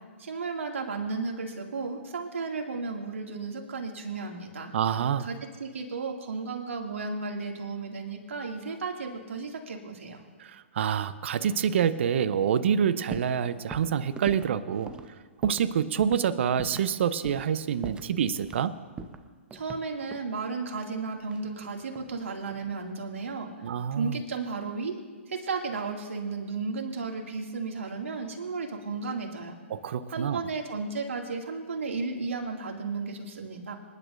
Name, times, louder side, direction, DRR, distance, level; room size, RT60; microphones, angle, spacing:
voice 1, 0.2-4.7 5.2-10.2 19.5-23.5 24.0-25.0 25.3-29.6 30.1-33.7, right 4 dB, 75° right, 1 dB, 2.3 m, -34 dB
voice 2, 4.7-5.3 10.4-14.9 15.4-18.7 23.6-24.2 29.7-30.4, right 8 dB, 60° right, 13 dB, 0.7 m, -27 dB
sound 1, 13.1-13.4 13.7-15.7 16.0-16.2 16.6-16.9 17.2-17.5 17.8-18.7 19.0-20.3 21.3-22.2 22.5-22.9, right 4 dB, 15° right, 0.8 m, -41 dB
26.5 x 10.5 x 2.6 m, 1.5 s
hypercardioid pair, 130°, 7 cm